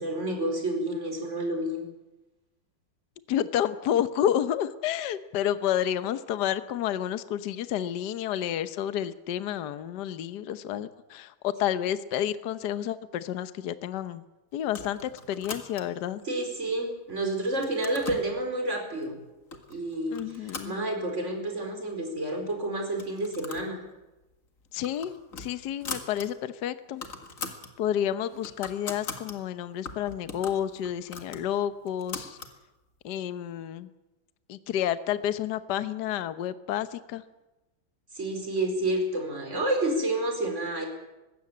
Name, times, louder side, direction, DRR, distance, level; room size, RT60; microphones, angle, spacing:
voice 1, 0.0-1.8 16.2-19.2 19.7-23.8 38.1-40.8, right 1 dB, 35° right, 3 dB, 4.8 m, -29 dB
voice 2, 3.3-14.2 14.5-16.2 20.1-20.8 24.7-27.0 27.8-32.4 33.0-33.9 34.5-37.2, left 10 dB, 60° left, 12 dB, 1.4 m, -30 dB
sound 1, 14.7-16.1 16.6-17.1 17.4-18.3 19.0-19.1 19.5-19.8 20.1-21.3 21.7-21.8 22.0-22.1 22.8-23.7 24.0-24.2 24.6-26.3 26.6-26.7 26.9-27.7 28.1-29.4 29.8-32.6, left 4 dB, 40° left, 2.2 m, -40 dB
20.5 x 16.0 x 8.6 m, 1.0 s
omnidirectional pair, 2.3 m